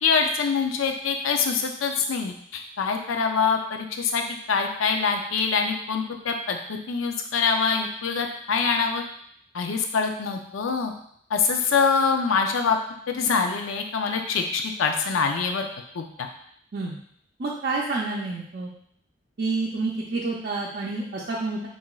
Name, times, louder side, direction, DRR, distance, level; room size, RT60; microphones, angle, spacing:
voice 1, 0.0-9.0 9.5-10.9 11.3-12.8 13.1-15.7 15.9-16.3, left 5 dB, 85° left, 4 dB, 0.5 m, -25 dB
voice 2, 17.4-18.7 19.4-21.7, right 3 dB, 50° right, -5 dB, 0.5 m, -28 dB
5.7 x 2.5 x 2.3 m, 0.65 s
head